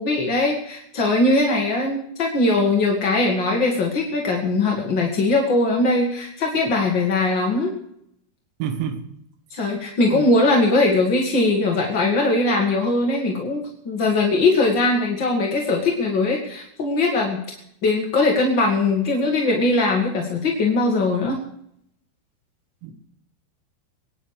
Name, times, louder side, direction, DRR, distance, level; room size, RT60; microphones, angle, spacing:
voice 1, 0.0-7.7 9.5-17.4 17.8-21.4, left 2 dB, 45° left, 1.5 m, -20 dB
voice 2, 8.6-9.1 10.1-10.3 22.8-22.9, right 8 dB, 90° right, 3.8 m, -27 dB
24.0 x 10.0 x 4.9 m
omnidirectional pair, 5.1 m